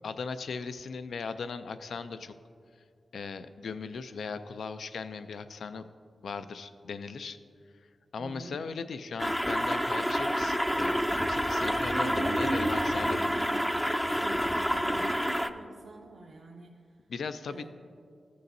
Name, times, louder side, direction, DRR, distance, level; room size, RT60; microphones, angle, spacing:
voice 1, 0.0-2.3 3.1-5.8 6.2-7.4 8.1-13.2 17.1-17.7, left 5 dB, 90° left, 11 dB, 0.3 m, -38 dB
voice 2, 8.2-8.6 11.9-13.8 14.1-16.9 17.5-17.7, right 2 dB, 80° right, 0 dB, 0.6 m, -39 dB
sound 1, 9.2-15.5, equal, ahead, 0.4 m, -28 dB
14.0 x 6.7 x 2.6 m, 2.3 s
cardioid pair, 75°, 0 cm